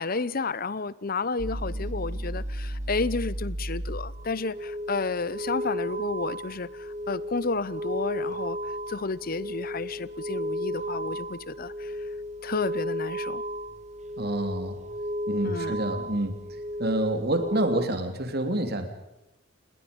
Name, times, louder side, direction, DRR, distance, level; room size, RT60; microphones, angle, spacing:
voice 1, 0.0-8.6 8.9-11.9 12.4-13.4 15.4-15.7, left 3 dB, 45° left, 19 dB, 0.8 m, -31 dB
sound 1, 1.4-17.9, equal, 30° right, 0.9 m, -34 dB
voice 2, 14.2-14.8 15.3-16.4 16.8-18.9, right 1 dB, 45° right, 7 dB, 3.1 m, -27 dB
29.5 x 20.5 x 5.4 m, 0.96 s
head